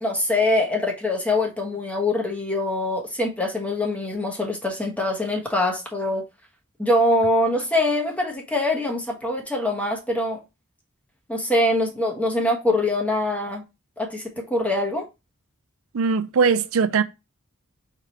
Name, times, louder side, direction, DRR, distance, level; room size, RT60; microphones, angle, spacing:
voice 1, 0.0-6.2 6.8-10.4 11.3-13.6 14.0-15.0, left 1 dB, 5° left, 1.2 m, -23 dB
voice 2, 15.9-17.0, right 5 dB, 80° right, 0.5 m, -20 dB
4.6 x 3.8 x 2.9 m
head